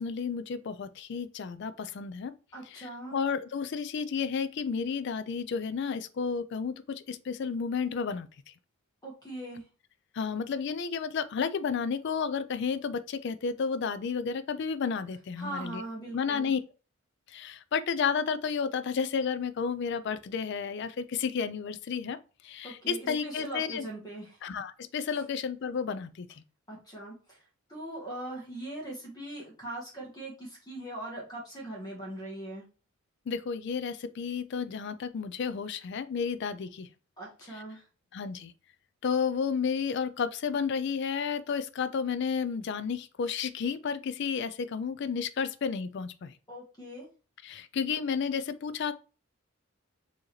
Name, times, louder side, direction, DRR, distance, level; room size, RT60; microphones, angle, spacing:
voice 1, 0.0-2.3 2.7-8.3 10.1-15.8 16.1-16.6 17.3-22.2 22.4-23.9 24.4-26.4 33.3-36.9 37.5-37.6 38.1-38.5 39.0-46.3 47.4-48.9, left 6 dB, 55° left, 0.4 m, -32 dB
voice 2, 2.5-3.2 9.0-9.6 15.4-16.5 22.6-24.4 26.7-27.4 27.7-32.6 37.2-37.8 46.5-47.1, right 1 dB, 20° left, 1.2 m, -40 dB
4.6 x 2.9 x 3.1 m
head